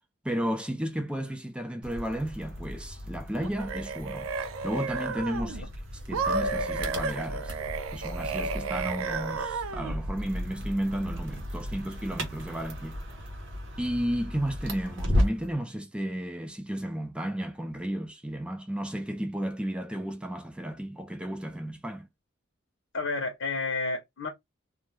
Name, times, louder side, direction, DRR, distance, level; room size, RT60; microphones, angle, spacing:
voice 1, 0.2-5.7 6.1-7.6 7.9-13.0 13.8-22.1, equal, 5° right, 0.4 m, -33 dB
sound 1, 1.8-15.5, equal, 60° right, 0.8 m, -35 dB
sound 2, 3.4-5.6 6.1-10.0, right 4 dB, 80° right, 0.4 m, -32 dB
voice 2, 22.9-24.3, left 3 dB, 65° left, 0.7 m, -31 dB
2.2 x 2.2 x 3.1 m
head